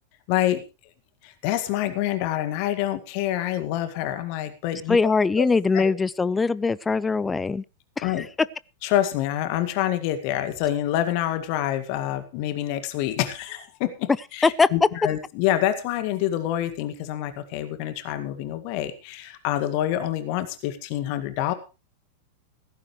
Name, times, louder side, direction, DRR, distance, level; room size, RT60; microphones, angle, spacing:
voice 1, 0.3-0.6 1.2-5.0 5.3-5.5 5.7-5.9 8.0-8.3 8.8-21.5, left 12 dB, 45° left, 1.9 m, -27 dB
voice 2, 4.9-7.6 8.0-8.2 14.4-14.7, left 4 dB, 15° left, 0.6 m, -22 dB
17.0 x 14.5 x 3.2 m
figure-of-eight pair, 90°, 0 cm